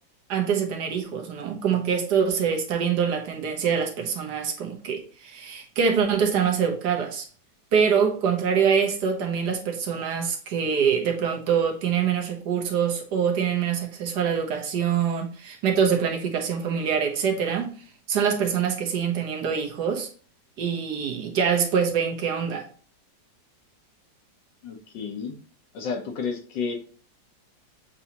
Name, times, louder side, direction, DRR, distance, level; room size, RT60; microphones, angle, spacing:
voice 1, 0.3-7.3 7.7-17.8 18.1-20.1 20.6-22.7, right 7 dB, 70° right, 1.3 m, -25 dB
voice 2, 24.6-25.3 25.7-26.8, left 5 dB, 75° left, 1.5 m, -31 dB
7.0 x 2.7 x 2.8 m
omnidirectional pair, 2.0 m